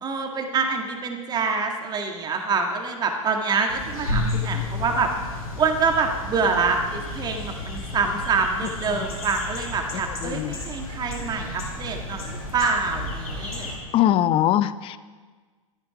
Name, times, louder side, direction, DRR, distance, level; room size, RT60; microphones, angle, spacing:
voice 1, 0.0-5.1 5.6-13.7, right 4 dB, 25° right, 4 dB, 1.6 m, -26 dB
sound 1, 3.7-13.8, left 2 dB, 85° left, 3.7 m, -32 dB
voice 2, 10.2-10.6 13.9-15.0, left 12 dB, 30° left, 15 dB, 0.6 m, -21 dB
13.5 x 11.0 x 6.0 m, 1.4 s
hypercardioid pair, 110°, 18 cm